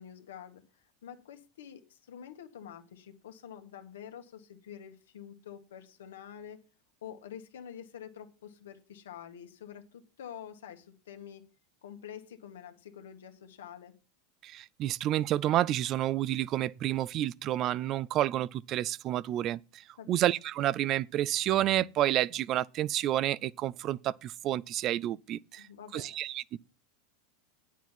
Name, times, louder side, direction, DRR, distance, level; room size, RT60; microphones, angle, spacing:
voice 1, 0.0-6.6 7.0-11.5 11.8-13.9 20.0-20.2 25.5-26.2, left 9 dB, 85° left, 1.7 m, -47 dB
voice 2, 14.4-19.6 20.1-25.6 25.9-26.6, right 13 dB, 45° right, 0.4 m, -29 dB
9.1 x 7.3 x 5.8 m
hypercardioid pair, 105°, 0 cm